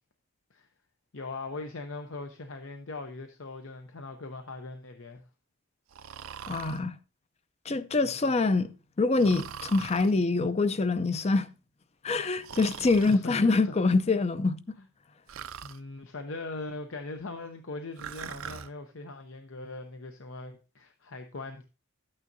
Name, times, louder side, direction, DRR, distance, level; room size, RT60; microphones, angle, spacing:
voice 1, 1.1-5.2 8.0-8.2 12.8-13.9 14.8-14.9 15.6-21.6, left 3 dB, 65° left, 0.7 m, -40 dB
Breathing, 5.9-6.8 9.2-10.1 12.4-13.2 15.3-15.8 18.0-18.7, right 8 dB, 75° right, 0.5 m, -41 dB
voice 2, 6.5-6.9 7.7-8.7 9.0-11.5 12.0-14.6, left 3 dB, 30° left, 0.5 m, -25 dB
12.0 x 8.8 x 2.7 m
head